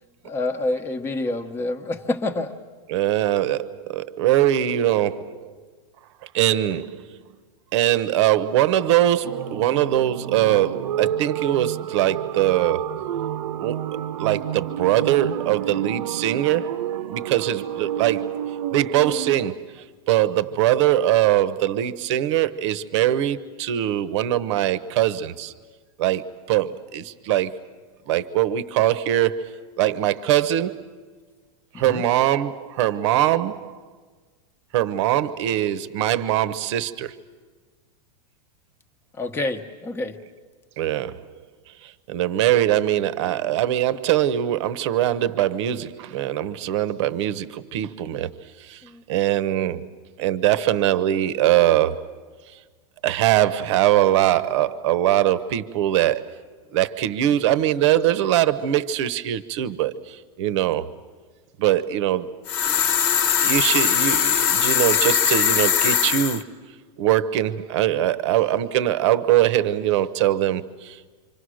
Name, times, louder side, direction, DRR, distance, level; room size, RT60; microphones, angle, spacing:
voice 1, 0.2-2.5 31.7-32.0 39.1-40.2 48.8-49.0, left 2 dB, 15° left, 1.0 m, -27 dB
voice 2, 2.9-5.5 6.3-7.2 7.7-12.9 13.6-16.7 17.1-18.3 18.7-25.5 26.0-27.5 28.1-30.8 31.7-33.8 34.7-37.2 40.8-41.3 41.8-48.3 48.6-48.8 49.1-49.9 50.2-52.2 53.0-56.4 56.7-60.9 61.6-62.3 62.6-62.8 63.4-66.5 67.0-71.1, right 12 dB, 55° right, 1.0 m, -22 dB
sound 1, 9.2-19.5, right 10 dB, 80° right, 0.9 m, -29 dB
sound 2, 62.5-66.4, left 8 dB, 45° left, 1.2 m, -20 dB
26.0 x 25.5 x 6.4 m
supercardioid pair, 160°, 18 cm